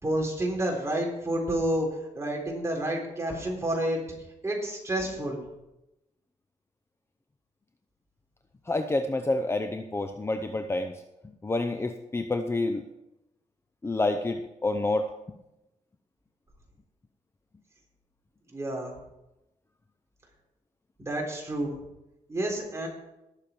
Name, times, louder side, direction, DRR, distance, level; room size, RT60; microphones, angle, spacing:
voice 1, 0.0-1.9 2.1-4.0 4.4-5.4 18.5-18.9 21.0-21.8 22.3-22.9, right 1 dB, 20° right, -1 dB, 3.9 m, -29 dB
voice 2, 8.7-10.9 11.4-12.8 13.8-15.1, left 2 dB, 20° left, 7 dB, 0.7 m, -28 dB
18.5 x 7.0 x 4.6 m, 0.92 s
wide cardioid pair, 115°, 13 cm